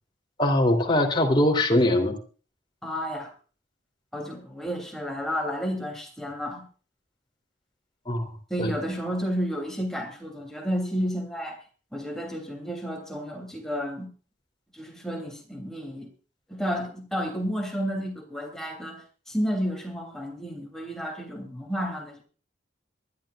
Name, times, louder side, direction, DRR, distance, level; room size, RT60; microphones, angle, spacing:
voice 1, 0.4-2.2 8.1-8.3 8.6-8.7, left 1 dB, 25° left, 3.2 m, -22 dB
voice 2, 2.8-3.3 4.1-6.7 8.5-11.6 11.9-14.1 14.7-16.1 16.5-22.2, equal, 5° left, 3.1 m, -31 dB
23.5 x 12.5 x 2.5 m
head